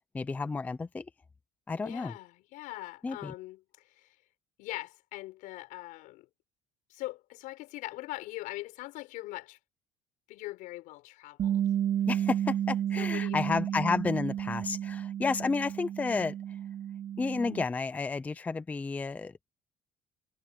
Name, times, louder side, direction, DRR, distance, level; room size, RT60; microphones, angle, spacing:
voice 1, 0.1-1.1 1.7-2.2 3.0-3.3 12.1-16.3 17.2-19.3, left 4 dB, 10° left, 0.5 m, -31 dB
voice 2, 1.8-4.2 4.6-6.3 6.9-9.6 10.3-11.6 13.0-13.6, left 18 dB, 80° left, 5.6 m, -42 dB
Bass guitar, 11.4-17.6, right 10 dB, 45° right, 3.2 m, -32 dB
cardioid pair, 180°, 13 cm